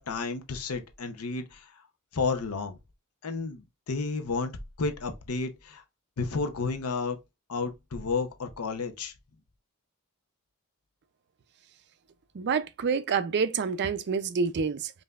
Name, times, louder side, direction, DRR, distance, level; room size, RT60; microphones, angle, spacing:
voice 1, 0.0-1.7 2.1-2.8 3.2-4.5 4.8-5.8 6.2-7.2 7.5-9.1, left 4 dB, 85° left, 0.7 m, -31 dB
voice 2, 12.3-15.0, right 5 dB, 50° right, 0.4 m, -28 dB
5.5 x 2.6 x 2.3 m
head